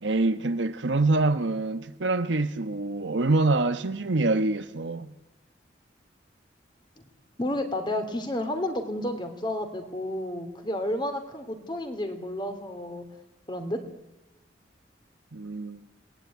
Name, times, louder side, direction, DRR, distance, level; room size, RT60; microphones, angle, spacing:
voice 1, 0.0-5.1 15.3-15.8, right 2 dB, 85° right, 1.1 m, -25 dB
voice 2, 7.4-13.0 13.5-13.8, left 1 dB, 25° left, 2.8 m, -31 dB
28.0 x 19.5 x 9.3 m
head